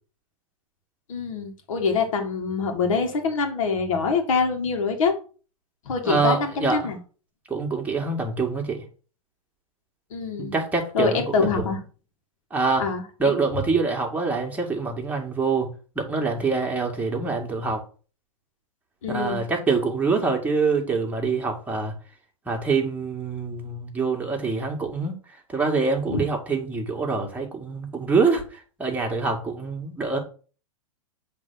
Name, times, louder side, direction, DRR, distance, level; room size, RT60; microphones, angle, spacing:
voice 1, 1.1-5.1 5.9-7.0 10.1-10.6 10.9-11.8 12.8-13.4 19.0-19.4 26.1-26.2, left 5 dB, 70° left, 2.0 m, -25 dB
voice 2, 6.0-6.9 7.5-8.9 10.4-11.7 12.5-12.9 13.2-17.8 19.1-21.9 22.5-25.2 25.5-30.2, right 4 dB, 10° right, 2.0 m, -25 dB
7.5 x 3.5 x 5.7 m
hypercardioid pair, 110°, 18 cm